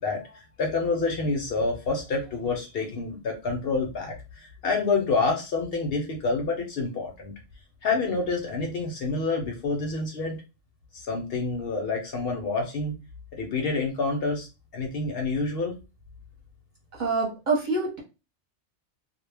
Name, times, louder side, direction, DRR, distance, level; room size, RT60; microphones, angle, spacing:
voice 1, 0.0-7.3 7.8-10.4 10.9-13.0 13.3-14.5 14.7-15.8, left 3 dB, 60° left, 2 dB, 0.7 m, -28 dB
voice 2, 16.9-18.0, right 3 dB, 45° right, -2 dB, 0.8 m, -26 dB
2.1 x 2.0 x 3.2 m, 0.29 s
omnidirectional pair, 1.2 m